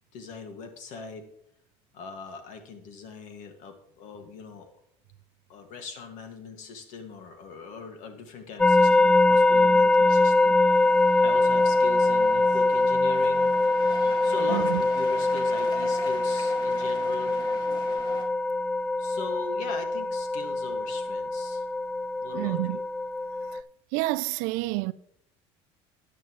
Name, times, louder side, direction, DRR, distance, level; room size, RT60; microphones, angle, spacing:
voice 1, 0.1-1.3 1.9-4.7 5.5-10.6 11.2-13.5 14.2-17.3 19.0-21.7 22.2-22.8, left 4 dB, 65° left, 2.1 m, -40 dB
sound 1, 8.6-23.6, left 2 dB, 5° left, 0.4 m, -23 dB
sound 2, 9.3-18.2, left 1 dB, 35° left, 2.3 m, -43 dB
voice 2, 14.5-14.8 22.3-22.8 23.5-23.6 23.9-24.9, right 20 dB, 75° right, 0.5 m, -28 dB
13.5 x 9.2 x 3.2 m
supercardioid pair, 105°, 14 cm